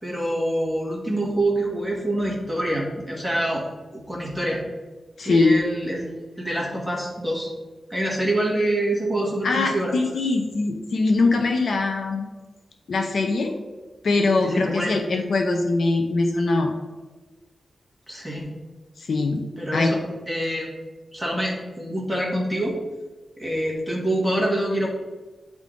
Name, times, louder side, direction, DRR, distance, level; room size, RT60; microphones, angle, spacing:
voice 1, 0.0-3.6 3.9-4.6 5.2-6.1 6.4-7.5 7.9-9.9 14.4-15.0 18.1-18.5 19.6-20.0 20.3-20.7 21.1-22.8 23.4-24.9, right 1 dB, ahead, -3 dB, 1.6 m, -26 dB
voice 2, 5.2-5.5 9.4-12.3 12.9-13.5 14.0-16.7 19.0-19.4 19.7-19.9, left 3 dB, 60° left, 4 dB, 0.7 m, -22 dB
9.6 x 3.7 x 3.7 m, 1.2 s
wide cardioid pair, 160°, 0 cm